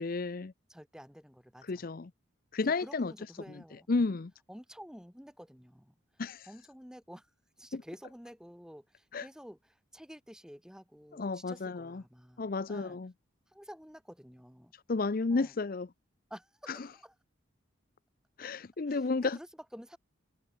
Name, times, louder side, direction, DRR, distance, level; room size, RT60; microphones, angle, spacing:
voice 1, 0.0-0.5 1.7-2.1 2.5-3.1 3.9-4.3 6.2-6.5 9.1-9.3 11.1-12.0 12.4-13.1 14.9-15.9 16.7-16.8 18.4-19.4, left 3 dB, 45° left, 0.5 m, -32 dB
voice 2, 0.7-1.9 2.8-4.1 4.5-7.3 7.6-13.0 13.5-14.7 15.3-15.6 16.3-17.1 18.9-20.0, equal, 5° right, 3.8 m, -51 dB
head